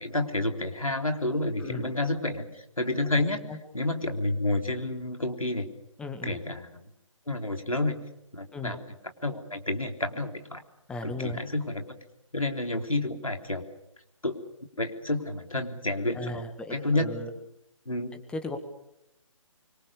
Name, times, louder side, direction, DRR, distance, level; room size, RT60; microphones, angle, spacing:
voice 1, 0.0-3.5 3.7-5.7 6.2-6.7 7.3-8.0 8.3-8.9 9.2-10.6 11.0-11.8 12.3-13.6 14.2-14.4 14.8-16.4 16.7-17.1 17.9-18.2, left 2 dB, 90° left, 5 dB, 3.5 m, -29 dB
voice 2, 1.6-1.9 3.5-3.6 6.0-6.4 8.5-8.8 10.9-11.4 16.1-17.3 18.3-18.6, left 2 dB, 5° left, 8 dB, 1.9 m, -36 dB
25.5 x 25.0 x 6.9 m, 0.84 s
figure-of-eight pair, 145°, 17 cm